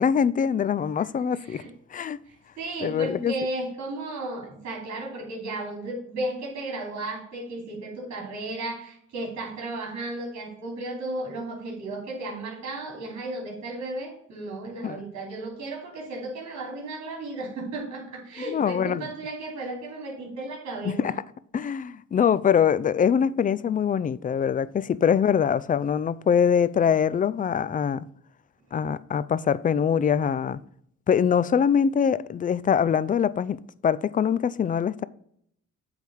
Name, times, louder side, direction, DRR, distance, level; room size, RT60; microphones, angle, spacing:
voice 1, 0.0-1.6 1.9-2.2 2.8-3.3 14.8-15.0 18.5-19.0 21.0-21.1 21.5-28.1 28.7-30.6 31.1-33.6 33.8-35.0, left 7 dB, 30° left, 0.4 m, -23 dB
voice 2, 1.3-1.7 2.3-21.2, right 2 dB, 65° right, 2.8 m, -34 dB
8.2 x 3.6 x 6.2 m
cardioid pair, 90°, 30 cm